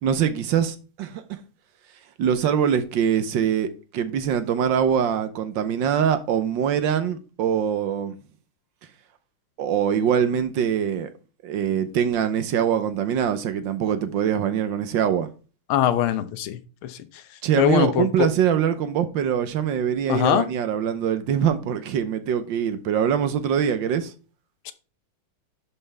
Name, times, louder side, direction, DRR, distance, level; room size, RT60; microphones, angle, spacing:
voice 1, 0.0-1.4 2.2-8.2 9.6-11.1 11.4-15.3 17.4-24.1, right 8 dB, 70° right, 1.4 m, -23 dB
voice 2, 15.7-17.0 17.6-18.3 20.1-20.5 24.6-24.7, left 11 dB, 90° left, 1.6 m, -22 dB
11.0 x 5.6 x 3.4 m
omnidirectional pair, 2.3 m